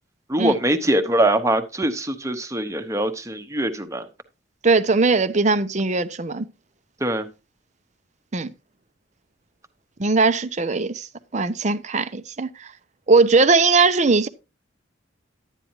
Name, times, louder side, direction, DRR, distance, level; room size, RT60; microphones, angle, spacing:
voice 1, 0.3-4.1 7.0-7.3, right 1 dB, 15° right, 1.0 m, -22 dB
voice 2, 4.6-6.5 8.3-8.5 10.0-11.1 11.3-12.7 13.1-14.3, right 3 dB, 35° right, 0.7 m, -19 dB
11.5 x 9.1 x 3.0 m
head